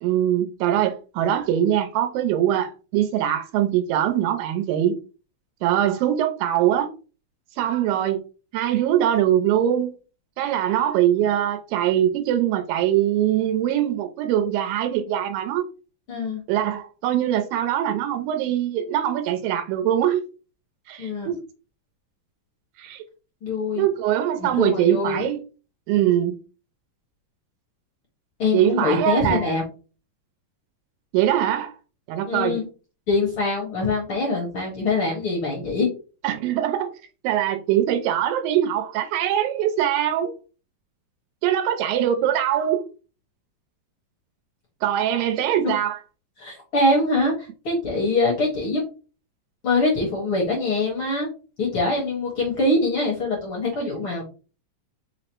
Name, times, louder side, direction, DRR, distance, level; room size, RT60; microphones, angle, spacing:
voice 1, 0.0-5.0 5.6-6.9 7.6-8.2 8.5-9.9 10.4-15.7 16.5-20.2 20.9-21.4 22.8-23.0 23.8-25.4 25.9-26.4 28.5-29.5 31.1-31.7 32.1-32.6 36.2-36.9 37.2-40.4 41.4-42.9 44.8-46.0 53.8-53.9, right 11 dB, 90° right, 2.4 m, -22 dB
voice 2, 16.1-16.4 21.0-21.3 23.4-23.9 24.4-25.4 28.4-29.6 32.3-32.7 33.1-35.9 45.6-45.7 46.4-48.8 49.6-51.3 51.6-54.2, left 2 dB, 55° left, 1.5 m, -24 dB
5.5 x 2.0 x 4.4 m
omnidirectional pair, 3.9 m